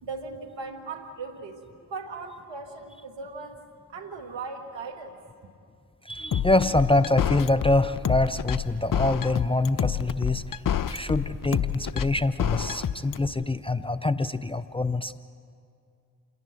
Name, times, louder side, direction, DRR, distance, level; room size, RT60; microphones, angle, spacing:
voice 1, 0.0-3.6 3.9-5.2, right 4 dB, 70° right, 5 dB, 2.0 m, -38 dB
voice 2, 6.1-10.6 10.9-15.2, left 2 dB, 10° left, 12 dB, 0.5 m, -25 dB
sound 1, 6.3-13.3, left 9 dB, 45° left, 0.9 m, -27 dB
28.0 x 11.0 x 8.5 m, 2.4 s
hypercardioid pair, 40°, 46 cm